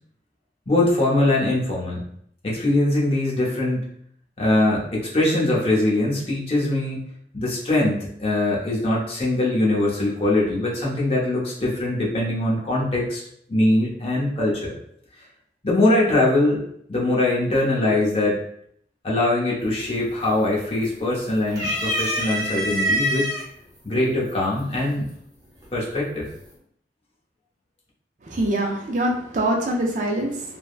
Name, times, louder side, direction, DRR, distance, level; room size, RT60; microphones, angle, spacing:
voice 1, 0.7-2.0 2.4-3.9 4.4-7.0 7.3-13.2 13.5-14.7 15.6-16.6 16.9-18.4 19.0-23.3 23.8-25.0 25.7-26.3, left 1 dB, 35° left, -4 dB, 0.7 m, -22 dB
sound 1, 19.6-20.0 20.4-21.1 21.5-23.4 24.3-24.4 25.6-26.1, equal, 20° right, 0.8 m, -25 dB
voice 2, 28.2-30.6, right 1 dB, 45° right, 0 dB, 0.4 m, -24 dB
3.3 x 2.1 x 2.4 m, 0.68 s
head